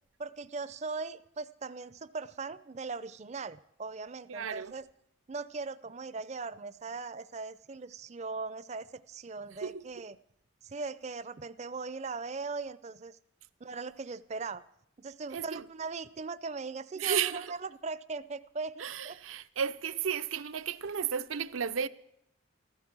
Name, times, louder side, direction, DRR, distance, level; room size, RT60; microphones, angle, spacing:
voice 1, 0.2-4.9 5.3-10.2 10.6-13.2 13.6-14.6 15.0-19.2, right 4 dB, 35° right, 0.5 m, -39 dB
voice 2, 4.3-4.7 9.6-9.9 15.3-15.6 17.0-17.5 18.8-21.9, right 7 dB, 85° right, 0.6 m, -33 dB
15.0 x 13.0 x 6.1 m
head